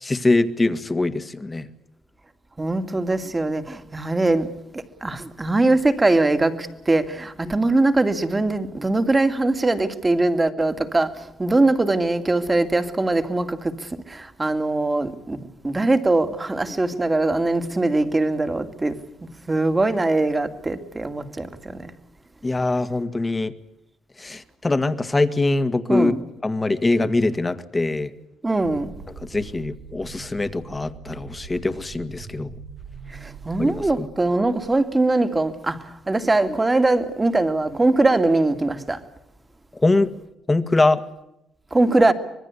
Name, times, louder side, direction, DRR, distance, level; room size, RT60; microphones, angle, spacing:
voice 1, 0.0-1.7 22.4-23.5 24.2-26.1 26.4-28.1 29.3-32.5 33.6-34.1 39.8-40.1 40.5-41.0, left 2 dB, 20° left, 1.9 m, -22 dB
voice 2, 2.6-4.5 4.7-11.1 11.4-13.7 14.1-18.9 19.5-21.9 25.9-26.2 28.4-28.9 33.2-39.0 41.7-42.1, right 2 dB, 20° right, 2.5 m, -21 dB
sound 1, 28.5-34.8, right 5 dB, 85° right, 6.8 m, -42 dB
25.5 x 20.5 x 8.4 m
cardioid pair, 90°, 0 cm